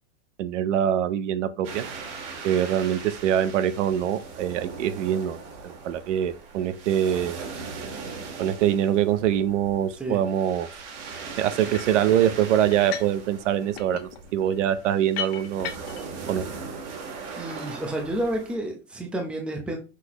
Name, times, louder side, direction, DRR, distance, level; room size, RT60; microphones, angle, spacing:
voice 1, 0.4-1.8 2.4-5.4 5.6-7.4 8.4-10.7 11.4-15.7 16.3-16.4, right 10 dB, 85° right, 0.9 m, -24 dB
sound 1, 1.6-18.6, right 4 dB, 55° right, 2.0 m, -39 dB
sound 2, 11.7-12.0 12.7-13.2 13.5-16.1, left 9 dB, 60° left, 1.1 m, -36 dB
voice 2, 17.4-19.8, right 1 dB, 5° right, 0.6 m, -30 dB
5.9 x 5.8 x 3.0 m
supercardioid pair, 175°, 35 cm